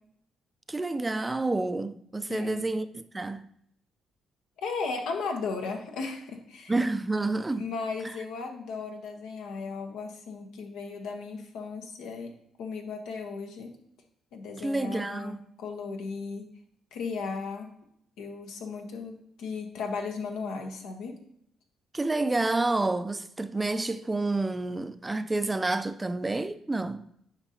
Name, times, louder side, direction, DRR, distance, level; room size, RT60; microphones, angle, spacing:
voice 1, 0.7-3.4 6.7-7.7 14.6-15.4 21.9-27.0, right 2 dB, 20° right, 0.4 m, -29 dB
voice 2, 2.3-2.7 4.6-6.7 7.6-12.3 12.6-13.7 14.3-16.5 16.9-17.7 18.2-21.2, left 4 dB, 90° left, 1.1 m, -36 dB
8.8 x 5.2 x 2.9 m
cardioid pair, 90°, 0 cm